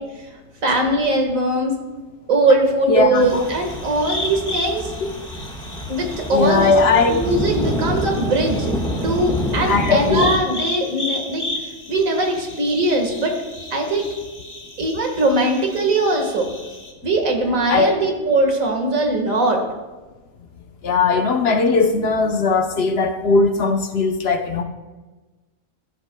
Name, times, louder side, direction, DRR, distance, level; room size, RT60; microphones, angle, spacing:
voice 1, 0.6-1.7 2.3-4.9 5.9-6.7 7.1-8.8 9.0-11.5 11.9-13.4 13.7-14.1 14.8-16.5 17.0-19.6, right 2 dB, 85° right, 3 dB, 2.0 m, -20 dB
voice 2, 2.9-3.4 6.3-7.2 9.7-10.3 17.7-17.9 20.8-24.6, left 4 dB, 55° left, 6 dB, 0.9 m, -18 dB
sound 1, 3.1-16.9, left 2 dB, 25° left, 1.1 m, -34 dB
sound 2, 3.2-10.4, equal, 5° left, 1.3 m, -27 dB
17.5 x 10.5 x 2.2 m, 1.2 s
omnidirectional pair, 1.4 m